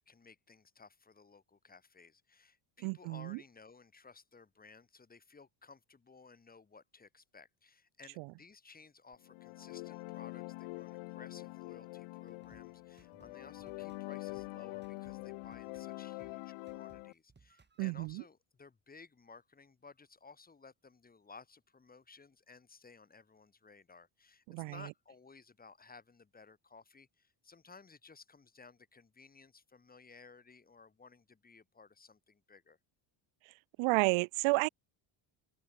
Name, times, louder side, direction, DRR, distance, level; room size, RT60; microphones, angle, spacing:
voice 1, 0.0-32.8, left 4 dB, 20° left, 1.6 m, -57 dB
voice 2, 2.8-3.4 17.8-18.2 24.5-24.7 33.8-34.7, right 27 dB, 75° right, 0.5 m, -31 dB
sound 1, 9.2-17.1, left 27 dB, 85° left, 0.9 m, -45 dB
sound 2, 12.3-18.1, right 4 dB, 20° right, 5.0 m, -66 dB
open air
cardioid pair, 115°, 48 cm